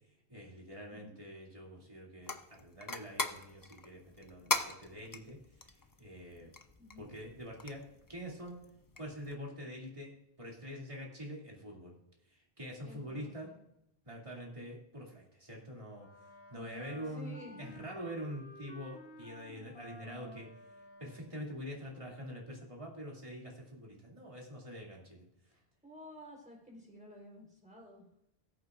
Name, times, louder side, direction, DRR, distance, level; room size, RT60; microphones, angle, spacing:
voice 1, 0.3-5.4 5.6-6.5 7.0-7.8 8.1-8.6 9.0-10.1 10.4-11.9 12.3-13.5 14.0-16.1 16.5-20.5 21.0-25.3, equal, 30° right, -2 dB, 2.7 m, -45 dB
sound 1, 2.2-9.4, left 2 dB, 25° left, 0.6 m, -41 dB
voice 2, 6.8-7.1 12.8-13.6 17.0-17.9 25.8-28.1, left 1 dB, 5° right, -2 dB, 3.7 m, -52 dB
Wind instrument woodwind instrument, 15.9-21.5, left 1 dB, 80° left, 1.5 m, -53 dB
18.5 x 8.4 x 2.5 m, 0.81 s
omnidirectional pair, 1.0 m